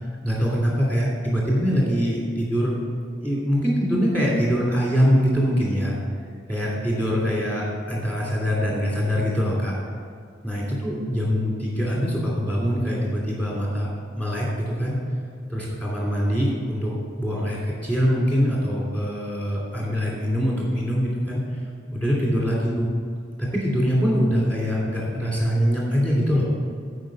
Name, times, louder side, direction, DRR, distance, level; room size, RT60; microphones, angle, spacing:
voice 1, 0.2-2.7 3.2-5.9 6.5-9.7 10.4-13.9 14.2-15.0 15.5-21.4 21.9-22.9 23.4-26.4, equal, 5° left, -4 dB, 2.5 m, -23 dB
9.1 x 5.4 x 7.5 m, 2.1 s
head